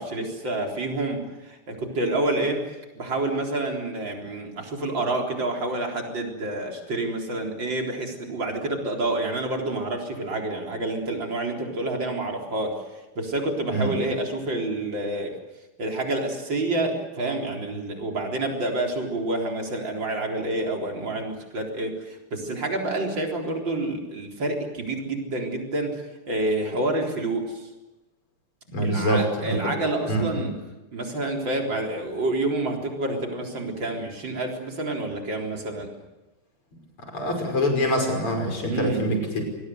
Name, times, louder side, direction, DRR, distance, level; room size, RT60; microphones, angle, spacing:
voice 1, 0.0-2.6 2.9-15.3 15.8-27.7 28.8-30.5 30.9-35.9 38.6-39.0, right 2 dB, 55° right, 1 dB, 4.7 m, -28 dB
voice 2, 28.7-29.7 30.1-30.4 37.1-39.4, equal, 75° left, 4 dB, 6.6 m, -25 dB
26.0 x 21.5 x 8.0 m, 1.1 s
omnidirectional pair, 2.4 m